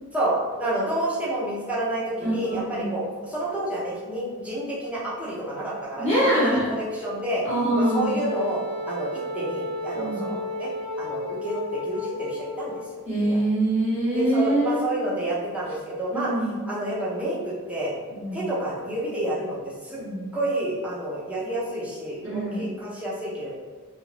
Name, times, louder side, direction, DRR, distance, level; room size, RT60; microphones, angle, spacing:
voice 1, 0.1-7.4 7.8-8.6 8.9-10.7 11.0-13.4 14.1-16.3 16.7-17.9 18.3-19.6 19.8-20.0 20.3-23.5, right 1 dB, 5° right, -7 dB, 0.6 m, -29 dB
voice 2, 2.2-2.8 6.0-6.6 7.4-8.1 9.9-10.2 13.1-14.8 16.1-16.5 18.1-18.4 20.0-20.2 22.2-22.6, right 1 dB, 30° left, -11 dB, 1.0 m, -24 dB
Wind instrument woodwind instrument, 7.7-12.9, left 2 dB, 75° right, 0.9 m, -32 dB
2.4 x 2.3 x 3.2 m, 1.4 s
head